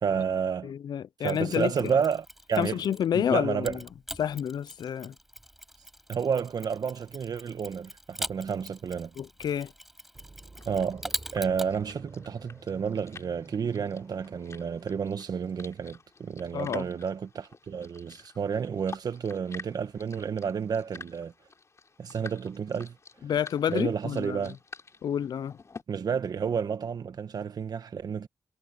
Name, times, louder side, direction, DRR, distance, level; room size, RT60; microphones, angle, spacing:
voice 1, 0.0-0.7 1.2-2.8 3.1-3.8 6.1-9.1 10.7-21.3 22.0-23.0 23.7-24.6 25.9-28.3, right 6 dB, 65° right, 1.8 m, -31 dB
voice 2, 0.6-1.9 2.6-3.8 4.2-5.1 9.2-9.7 16.5-16.8 23.2-24.4 25.0-25.6, left 9 dB, 75° left, 0.5 m, -29 dB
Mechanisms, 1.2-3.1 3.6-11.7, equal, 5° right, 4.9 m, -42 dB
sound 1, 10.1-15.1, right 3 dB, 30° right, 8.0 m, -50 dB
sound 2, 10.6-25.8, left 4 dB, 40° left, 4.2 m, -50 dB
cardioid pair, 75°, 7 cm